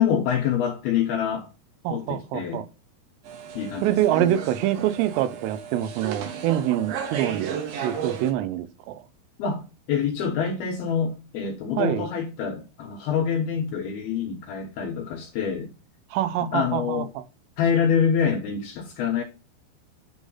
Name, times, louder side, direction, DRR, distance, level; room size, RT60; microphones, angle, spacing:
voice 1, 0.0-1.5 1.9-2.7 3.5-4.3 9.4-9.6 9.9-15.7 16.4-17.1 17.6-19.2, left 7 dB, 75° left, 2.4 m, -26 dB
voice 2, 1.9-2.7 3.8-7.5 7.8-9.0 11.8-12.1 16.1-17.1, right 12 dB, 85° right, 3.4 m, -25 dB
sound 1, 3.2-8.3, right 8 dB, 65° right, 2.5 m, -34 dB
10.0 x 3.4 x 5.5 m
omnidirectional pair, 5.6 m